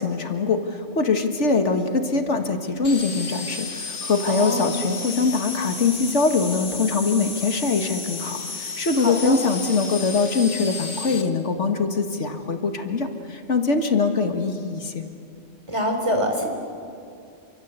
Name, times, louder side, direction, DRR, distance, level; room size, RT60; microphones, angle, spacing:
voice 1, 0.0-15.1, left 4 dB, 80° left, 6 dB, 2.0 m, -23 dB
sound 1, 2.8-11.2, left 4 dB, 50° left, 1.7 m, -33 dB
voice 2, 4.3-4.7 9.0-9.4 15.7-16.4, equal, 25° right, 3 dB, 3.8 m, -25 dB
28.0 x 24.5 x 8.1 m, 2.4 s
omnidirectional pair, 1.2 m